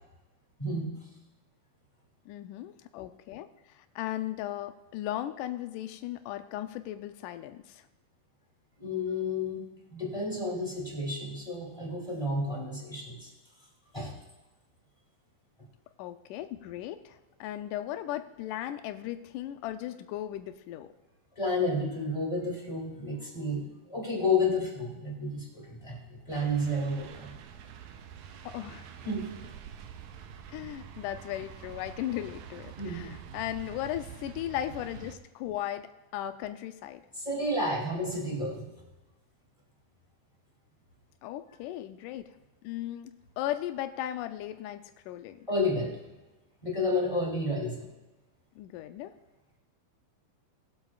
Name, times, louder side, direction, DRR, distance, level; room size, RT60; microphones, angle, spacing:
voice 1, 0.6-0.9 8.8-9.6 9.9-13.3 13.9-14.1 21.4-27.3 29.0-29.3 32.8-33.1 37.2-38.7 45.5-45.9 46.6-47.9, left 2 dB, 10° left, -3 dB, 2.1 m, -31 dB
voice 2, 2.3-7.8 16.0-20.9 28.5-28.9 30.5-37.0 41.2-42.3 42.6-45.4 48.6-49.1, left 12 dB, 85° left, 9 dB, 2.1 m, -37 dB
sound 1, 26.3-35.2, right 8 dB, 80° right, 2.1 m, -46 dB
21.0 x 7.9 x 2.4 m, 1.1 s
omnidirectional pair, 3.6 m